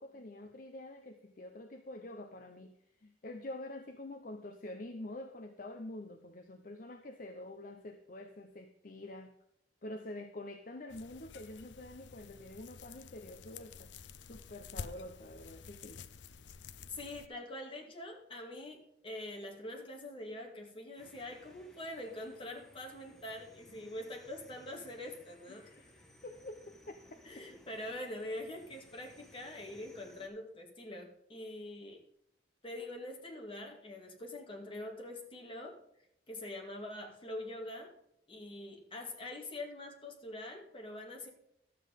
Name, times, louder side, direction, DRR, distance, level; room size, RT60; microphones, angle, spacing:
voice 1, 0.0-9.3 9.8-13.9 14.3-16.0 23.7-23.9 25.5-27.0 27.4-27.5, left 1 dB, 50° left, 6 dB, 0.8 m, -47 dB
sound 1, 10.9-17.3, left 5 dB, 80° left, 0.6 m, -50 dB
voice 2, 16.9-25.7 27.2-32.0 32.6-35.8 36.3-37.9 38.3-41.3, left 1 dB, 30° left, 1 dB, 2.4 m, -44 dB
sound 2, 21.0-30.3, left 1 dB, ahead, 1.5 m, -61 dB
12.5 x 7.6 x 5.2 m, 0.75 s
head